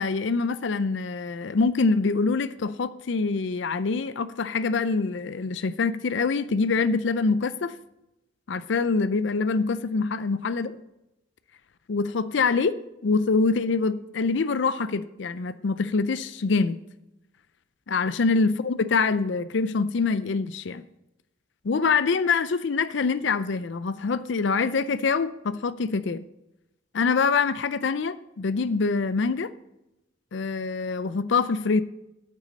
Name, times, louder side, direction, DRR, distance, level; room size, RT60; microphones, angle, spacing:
voice 1, 0.0-7.7 8.5-10.7 11.9-12.8 13.0-16.8 17.9-20.8 21.6-26.2 26.9-29.5 30.3-31.8, left 4 dB, 65° left, 14 dB, 0.5 m, -25 dB
9.2 x 8.2 x 4.1 m, 0.89 s
head